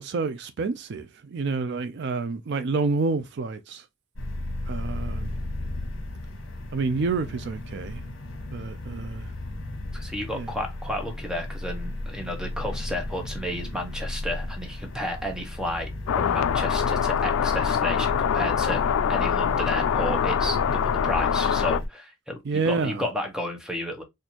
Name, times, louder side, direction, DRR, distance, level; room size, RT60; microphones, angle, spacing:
voice 1, 0.0-3.8 4.7-5.3 6.7-8.0 8.5-9.3 10.3-10.5 22.4-23.0, right 4 dB, 55° right, 0.4 m, -28 dB
sound 1, 4.1-21.9, left 1 dB, 70° left, 1.1 m, -34 dB
voice 2, 9.9-18.8 19.1-24.0, left 1 dB, 5° right, 0.8 m, -32 dB
sound 2, 16.1-21.8, left 8 dB, 85° left, 0.3 m, -24 dB
4.3 x 2.5 x 2.8 m
head